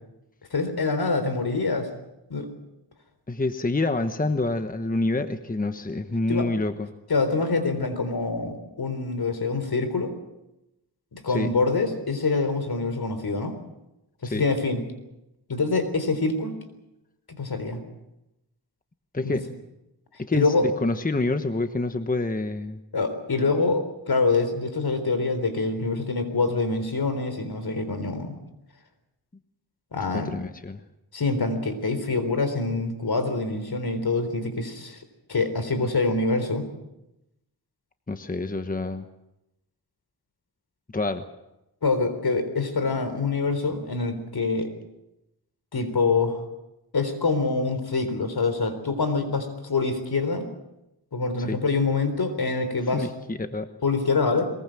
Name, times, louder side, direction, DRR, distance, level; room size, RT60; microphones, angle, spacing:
voice 1, 0.5-1.9 2.3-2.5 6.3-6.5 7.1-10.1 11.1-13.6 14.2-14.8 15.5-16.6 17.4-17.8 19.2-19.4 20.3-20.7 22.9-28.3 29.9-30.4 31.1-35.0 35.3-36.7 41.8-44.7 45.7-46.4 46.9-50.5 51.1-53.1 53.8-54.5, left 3 dB, 65° left, 9 dB, 3.9 m, -25 dB
voice 2, 3.3-6.9 11.3-11.5 14.2-14.4 19.1-19.4 20.2-22.8 30.1-30.8 38.1-39.1 40.9-41.2 51.4-51.6 52.9-53.7, left 2 dB, 20° left, 8 dB, 1.2 m, -27 dB
22.5 x 21.0 x 7.6 m, 0.91 s
wide cardioid pair, 90°, 40 cm